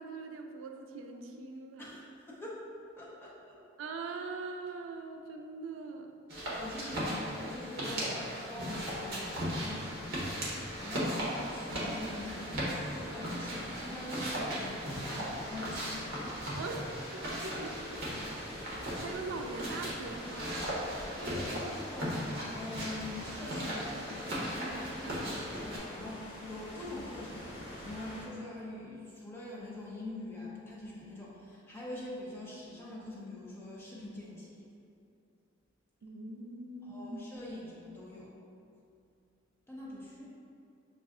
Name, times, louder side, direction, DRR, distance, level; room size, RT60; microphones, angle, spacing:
voice 1, 0.0-1.9 3.8-6.1 16.5-18.1 18.5-20.8 36.0-37.3, right 3 dB, 85° right, 4 dB, 0.3 m, -42 dB
voice 2, 1.8-2.6 3.0-3.6 6.3-16.2 21.2-34.7 36.8-38.3 39.7-40.3, left 1 dB, 10° left, -6 dB, 0.6 m, -44 dB
sound 1, 6.3-25.8, equal, 55° right, 0.9 m, -37 dB
sound 2, 8.7-28.3, equal, 60° left, 1.4 m, -46 dB
6.1 x 2.3 x 2.4 m, 2.5 s
head